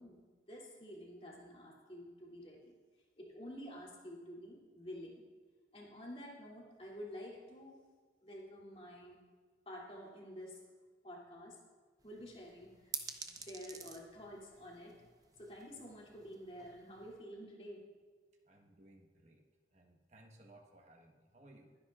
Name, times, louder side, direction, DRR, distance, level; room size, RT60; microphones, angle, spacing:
voice 1, 0.0-2.7 3.2-5.2 5.7-7.8 8.2-9.2 9.7-10.7 11.0-11.6 12.0-13.0 13.2-15.0 15.4-17.9, equal, 35° left, -5 dB, 2.8 m, -50 dB
sound 1, 12.0-17.2, right 5 dB, 20° right, 0.7 m, -50 dB
voice 2, 18.4-19.4 19.7-21.8, right 1 dB, 40° right, 2 dB, 1.3 m, -61 dB
23.0 x 10.0 x 2.5 m, 1.4 s
head